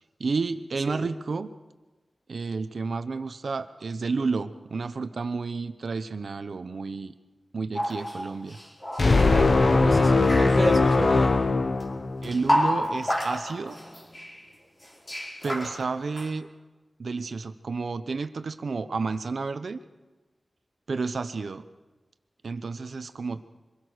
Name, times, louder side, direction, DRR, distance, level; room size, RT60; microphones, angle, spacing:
voice 1, 0.2-1.5 2.3-7.1 7.5-8.6 12.2-13.8 15.4-16.5 17.0-19.8 20.9-21.6 22.4-23.4, right 4 dB, 75° right, 10 dB, 1.1 m, -31 dB
sound 1, 7.8-9.6 9.9-10.8 11.8-11.9 12.2-14.4 14.8-16.3, equal, 25° left, 4.9 m, -30 dB
sound 2, 9.0-12.5, left 3 dB, 50° left, 1.1 m, -20 dB
voice 2, 9.1-11.3, right 1 dB, 15° right, -4 dB, 4.1 m, -31 dB
25.5 x 22.0 x 6.5 m, 1.2 s
wide cardioid pair, 105°, 0 cm